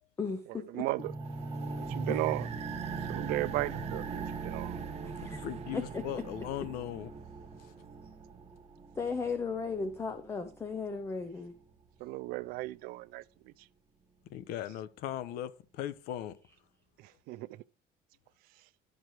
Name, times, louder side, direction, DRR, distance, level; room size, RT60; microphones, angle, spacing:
voice 1, 0.2-0.8 2.1-2.2 5.0-5.4 5.7-6.0 9.0-11.5, left 4 dB, 15° left, 0.6 m, -36 dB
voice 2, 0.7-1.1 1.9-2.5 3.1-4.8 12.0-13.5 17.0-17.6, right 19 dB, 65° right, 0.4 m, -35 dB
sound 1, 1.0-10.9, right 4 dB, 25° right, 1.5 m, -40 dB
sound 2, 1.2-8.6, right 9 dB, 40° right, 0.8 m, -50 dB
voice 3, 5.4-7.1 7.6-7.7 14.3-16.4, left 11 dB, 70° left, 0.8 m, -38 dB
11.5 x 4.8 x 4.6 m
cardioid pair, 150°, 16 cm